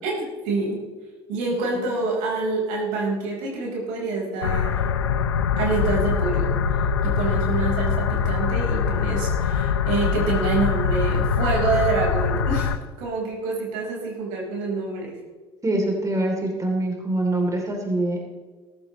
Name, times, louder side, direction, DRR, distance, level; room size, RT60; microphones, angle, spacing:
voice 1, 0.0-0.8 1.3-4.8 5.6-6.6 7.0-12.7 13.0-15.2, right 3 dB, 70° right, -2 dB, 4.9 m, -26 dB
sound 1, 4.4-12.8, left 6 dB, 85° left, 0.7 m, -23 dB
voice 2, 15.6-18.2, right 1 dB, 25° right, 1 dB, 3.3 m, -24 dB
16.0 x 15.0 x 3.2 m, 1.4 s
hypercardioid pair, 60°, 14 cm